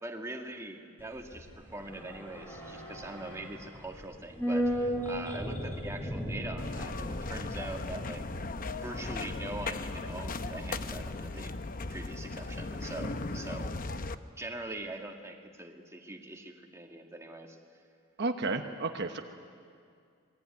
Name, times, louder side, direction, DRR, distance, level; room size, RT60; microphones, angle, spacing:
voice 1, 0.0-8.3 8.7-11.5 11.9-13.8 14.4-17.6, right 2 dB, 15° right, 2 dB, 2.0 m, -42 dB
sound 1, 1.0-11.5 11.7-11.8, equal, 10° left, 3.3 m, -37 dB
sound 2, 6.6-14.2, left 3 dB, 45° left, 0.8 m, -37 dB
voice 2, 18.2-19.2, right 3 dB, 55° right, 5 dB, 1.1 m, -32 dB
26.5 x 21.0 x 9.5 m, 2.3 s
head